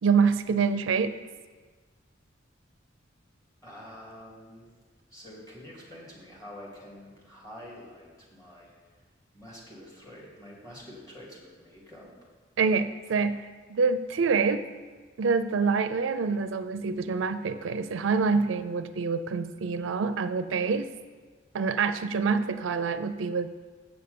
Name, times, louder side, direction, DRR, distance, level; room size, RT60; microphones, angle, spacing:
voice 1, 0.0-1.1 12.6-13.4 13.7-14.6 15.2-20.9 21.5-23.5, right 5 dB, 75° right, 11 dB, 0.4 m, -26 dB
voice 2, 3.6-4.7 5.1-9.0 9.3-12.1, left 1 dB, 20° left, -4 dB, 2.5 m, -47 dB
7.9 x 6.8 x 6.8 m, 1.4 s
head